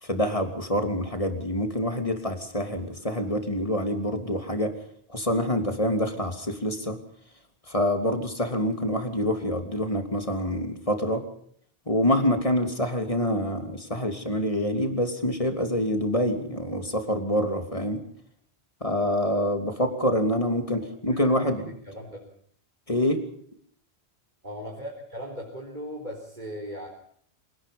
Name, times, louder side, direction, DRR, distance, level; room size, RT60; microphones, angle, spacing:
voice 1, 0.0-4.7 5.1-7.0 7.7-11.2 11.9-18.0 18.8-21.7 22.9-23.2, left 1 dB, 30° left, 6 dB, 3.2 m, -26 dB
voice 2, 21.1-22.3 24.4-26.9, equal, 45° right, -1 dB, 4.6 m, -38 dB
27.5 x 18.5 x 5.5 m, 0.63 s
omnidirectional pair, 1.1 m